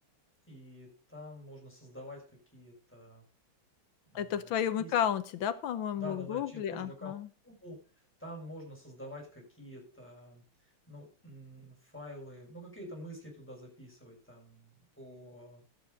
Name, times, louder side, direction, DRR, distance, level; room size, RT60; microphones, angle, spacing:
voice 1, 0.5-2.2 2.5-3.2 4.1-4.5 4.8-4.9 5.9-7.1 7.4-7.8 8.2-10.4 10.9-15.6, equal, 5° left, 5.5 m, -47 dB
voice 2, 4.1-7.3, left 9 dB, 70° left, 1.5 m, -32 dB
12.0 x 8.7 x 5.1 m
omnidirectional pair, 2.4 m